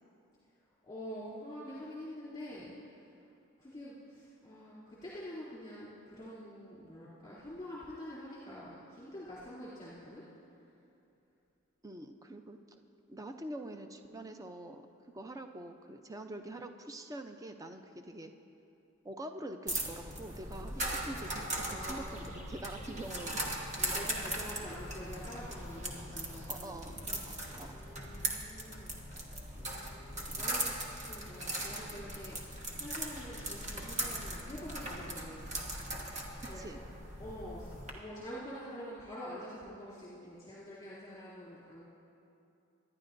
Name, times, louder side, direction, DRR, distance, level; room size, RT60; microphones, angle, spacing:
voice 1, 0.8-2.7 3.6-10.2 21.6-22.5 22.9-23.4 23.7-32.4 32.8-36.0 36.5-36.8 37.2-41.9, equal, 20° left, -11 dB, 2.8 m, -47 dB
voice 2, 11.8-12.6 13.1-14.8 15.1-18.3 19.0-23.4 26.5-27.8 36.4-36.8, right 1 dB, 15° right, 6 dB, 0.4 m, -45 dB
sound 1, 19.7-37.9, right 1 dB, 35° right, 1.3 m, -39 dB
25.0 x 10.5 x 2.6 m, 2.7 s
head